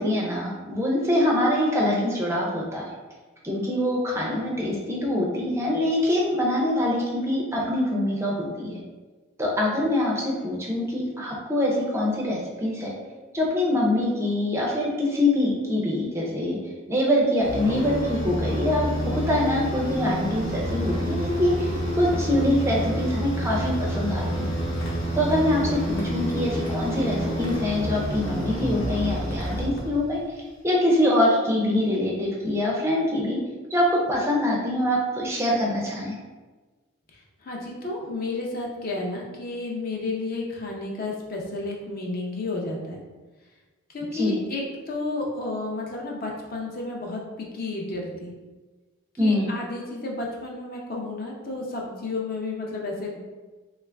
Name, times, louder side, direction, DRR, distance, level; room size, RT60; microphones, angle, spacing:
voice 1, 0.0-2.9 3.4-8.8 9.4-12.9 13.3-16.6 16.9-24.5 25.1-30.2 30.6-33.4 33.7-36.1 44.1-44.4 49.2-49.5, left 1 dB, 15° right, -3 dB, 0.5 m, -24 dB
sound 1, 17.4-30.2, equal, 85° left, 1.0 m, -28 dB
voice 2, 37.1-43.0 43.9-48.3 49.2-53.2, left 2 dB, 45° left, -1 dB, 0.6 m, -32 dB
3.1 x 2.4 x 3.3 m, 1.3 s
head